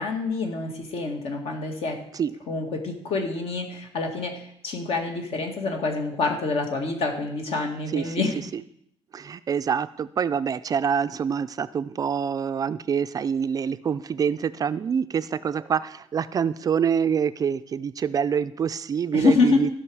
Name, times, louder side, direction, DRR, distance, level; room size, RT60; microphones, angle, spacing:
voice 1, 0.0-2.0 2.5-8.3 19.1-19.6, left 3 dB, 65° left, 3 dB, 2.0 m, -26 dB
voice 2, 9.1-19.7, right 7 dB, 35° right, 13 dB, 0.3 m, -26 dB
15.0 x 5.8 x 4.7 m, 0.73 s
cardioid pair, 135°, 11 cm